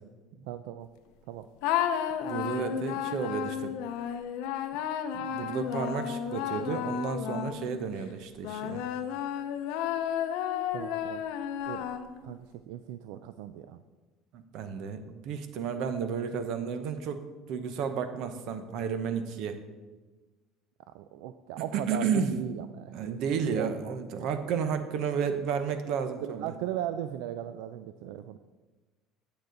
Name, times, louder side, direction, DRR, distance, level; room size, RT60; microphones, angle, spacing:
voice 1, 0.5-0.9 1.3-1.5 10.7-11.2 11.7-11.9 12.2-13.8 20.9-24.3 26.2-28.4, right 11 dB, 85° right, 11 dB, 0.3 m, -38 dB
sound 1, 1.6-7.8 8.4-12.3, left 9 dB, 80° left, 0.6 m, -32 dB
voice 2, 2.3-3.7 5.1-8.8 14.3-19.6 21.7-22.3 22.9-26.5, right 6 dB, 65° right, 9 dB, 0.8 m, -32 dB
9.0 x 6.8 x 3.9 m, 1.3 s
cardioid pair, 120°, 0 cm